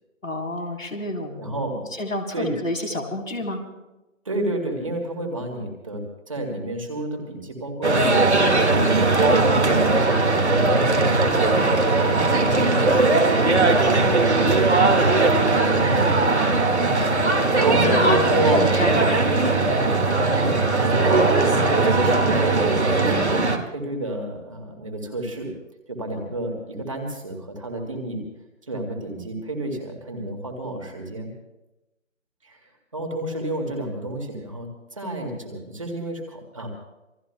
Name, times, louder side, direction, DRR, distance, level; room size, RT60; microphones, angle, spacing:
voice 1, 0.2-1.6 2.0-3.6 17.7-19.7, left 2 dB, 80° left, 1 dB, 3.9 m, -29 dB
voice 2, 1.4-1.9 2.3-2.5 4.2-9.1 9.5-16.1 17.1-17.3 17.6-18.7 20.2-23.4 23.7-25.5 25.9-28.2 28.6-31.3 32.4-32.6 32.9-36.7, right 1 dB, 25° right, 2 dB, 2.3 m, -31 dB
sound 1, 7.8-23.6, right 3 dB, 55° right, 2.1 m, -19 dB
28.0 x 20.5 x 2.3 m, 0.97 s
figure-of-eight pair, 175°, 39 cm